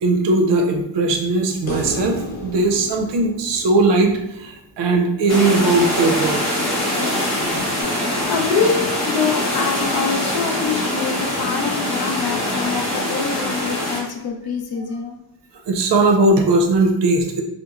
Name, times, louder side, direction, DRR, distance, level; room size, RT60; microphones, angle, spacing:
voice 1, 0.0-6.6 15.7-17.4, right 2 dB, 65° right, 4 dB, 0.5 m, -18 dB
sound 1, 1.7-5.0 7.8-7.9, left 2 dB, 80° left, 0.8 m, -32 dB
sound 2, 5.3-14.0, left 1 dB, 35° left, 0.8 m, -23 dB
voice 2, 8.3-15.2, left 5 dB, 55° left, 2 dB, 0.5 m, -24 dB
3.0 x 2.0 x 2.3 m, 0.86 s
wide cardioid pair, 140°, 45 cm